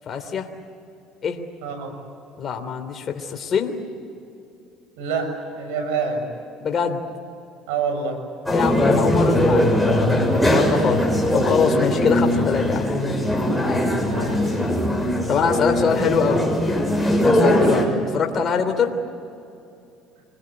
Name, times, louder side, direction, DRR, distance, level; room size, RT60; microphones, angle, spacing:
voice 1, 0.1-0.5 1.2-1.4 2.4-3.8 6.6-7.0 8.5-11.1 11.3-12.9 15.3-16.4 17.2-17.8 18.1-18.9, left 6 dB, 45° left, 5 dB, 3.1 m, -23 dB
voice 2, 1.6-1.9 5.0-6.3 7.7-8.2 14.0-14.6 17.4-17.8, right 5 dB, 85° right, 5 dB, 6.5 m, -27 dB
sound 1, 8.5-17.8, left 1 dB, 5° left, 6.8 m, -20 dB
25.5 x 22.0 x 9.7 m, 2.6 s
supercardioid pair, 95°, 0 cm